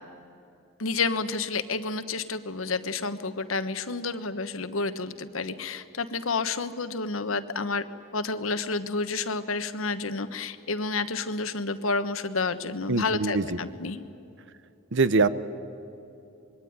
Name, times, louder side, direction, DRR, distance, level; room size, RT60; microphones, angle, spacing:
voice 1, 0.8-7.8 8.1-14.0, left 4 dB, 85° left, 11 dB, 1.3 m, -30 dB
voice 2, 12.9-13.4 14.9-15.3, right 3 dB, 65° right, 14 dB, 1.0 m, -22 dB
25.5 x 22.0 x 9.6 m, 2.8 s
head